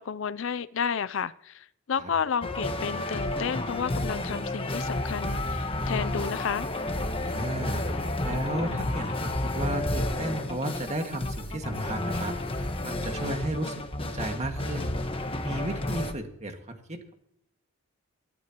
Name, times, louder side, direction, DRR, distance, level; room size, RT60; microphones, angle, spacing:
voice 1, 0.0-6.7, left 6 dB, 60° left, 0.5 m, -31 dB
sound 1, 2.4-16.1, left 1 dB, 25° left, 1.3 m, -31 dB
voice 2, 7.2-7.8 8.2-12.4 12.8-15.0 15.4-17.1, right 1 dB, 30° right, 1.9 m, -34 dB
23.5 x 11.5 x 3.0 m
head